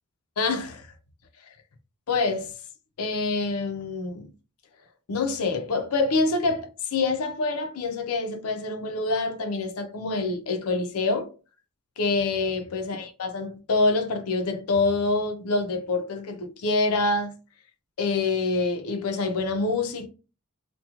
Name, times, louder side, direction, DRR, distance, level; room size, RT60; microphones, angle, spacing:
voice 1, 0.4-0.9 2.1-2.5 3.0-4.3 5.1-11.3 12.0-17.3 18.0-20.1, left 3 dB, 90° left, 0.5 m, -26 dB
2.4 x 2.2 x 2.8 m
head